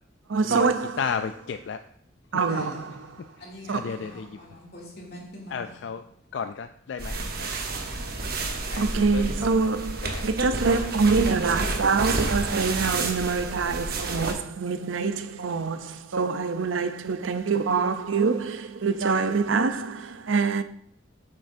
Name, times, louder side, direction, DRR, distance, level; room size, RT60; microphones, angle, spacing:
voice 1, 0.3-1.3 2.3-2.9 3.7-4.0 8.8-20.6, right 4 dB, 90° right, 0.6 m, -25 dB
voice 2, 1.0-1.8 3.7-4.3 5.5-6.0 6.3-7.1 8.7-8.8 9.1-9.5 10.0-10.2, left 6 dB, 70° left, 0.3 m, -32 dB
voice 3, 2.3-6.4 7.7-8.3, left 1 dB, 55° left, 2.6 m, -45 dB
sound 1, 7.0-14.3, right 2 dB, 50° right, 1.0 m, -30 dB
8.8 x 7.6 x 2.7 m
head